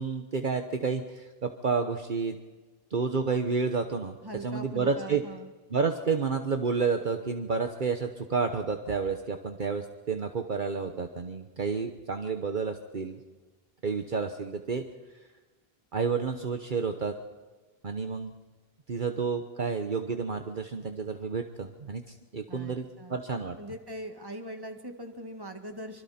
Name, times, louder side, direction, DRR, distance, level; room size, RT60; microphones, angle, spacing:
voice 1, 0.0-2.4 2.9-5.2 5.7-13.2 13.8-14.8 15.9-17.1 17.8-18.3 18.9-23.6, right 5 dB, 55° right, 6 dB, 1.2 m, -30 dB
voice 2, 4.2-5.5 22.5-23.2 23.6-26.0, right 1 dB, 20° right, 5 dB, 1.9 m, -41 dB
25.5 x 24.5 x 4.4 m, 1.3 s
omnidirectional pair, 1.0 m